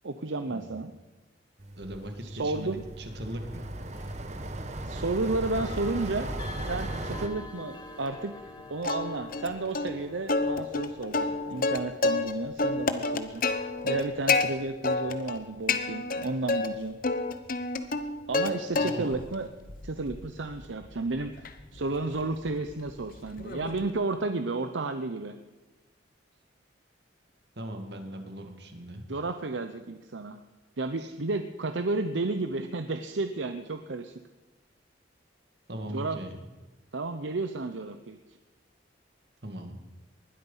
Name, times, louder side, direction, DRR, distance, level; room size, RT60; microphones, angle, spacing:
voice 1, 0.0-0.9 2.2-2.8 4.8-6.3 6.6-8.3 8.7-17.0 18.3-19.5 19.8-25.4 29.1-30.4 30.8-34.1 35.9-36.2 36.9-38.2, right 3 dB, 75° right, 8 dB, 0.8 m, -32 dB
sound 1, 1.6-7.3, right 1 dB, 35° right, 1.2 m, -37 dB
voice 2, 1.8-3.7 18.8-19.2 27.6-29.0 31.0-31.1 35.7-36.5 39.4-39.8, equal, 60° right, 5 dB, 2.1 m, -39 dB
sound 2, 3.9-4.2 5.5-16.3, left 3 dB, 25° left, 1.4 m, -49 dB
Plucked string instrument, 8.8-9.5 9.7-9.9 10.3-12.3 12.6-14.4 14.8-15.4 15.7-16.7 17.0-18.5 18.7-19.2 19.7-23.9, left 3 dB, 45° left, 1.0 m, -29 dB
20.0 x 12.5 x 5.6 m, 1.2 s
head